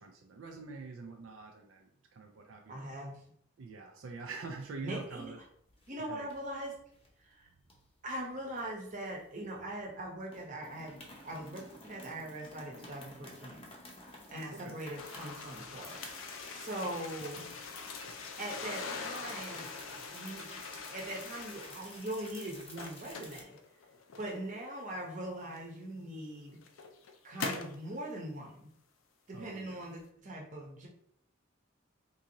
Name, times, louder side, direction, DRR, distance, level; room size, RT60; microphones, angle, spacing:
voice 1, 0.0-3.0 3.6-5.4 6.0-6.3 14.6-14.8 29.3-29.9, right 4 dB, 75° right, 3 dB, 0.4 m, -45 dB
voice 2, 2.7-3.4 4.8-5.3 5.9-6.8 7.2-7.5 8.0-13.7 14.3-16.1 16.5-17.5 18.4-20.6 20.9-23.6 24.2-26.6 27.2-28.7 29.3-30.9, right 1 dB, 40° right, -1 dB, 0.8 m, -41 dB
sound 1, 4.7-5.4 5.7-5.9 6.3-7.1 7.7-9.6 9.9-10.0 10.3-23.4, left 2 dB, 30° left, 0.6 m, -52 dB
sound 2, 15.0-22.2 22.6-24.6 25.5-25.6 26.3-27.8, left 4 dB, 80° left, 0.4 m, -43 dB
3.7 x 2.6 x 2.8 m, 0.67 s
head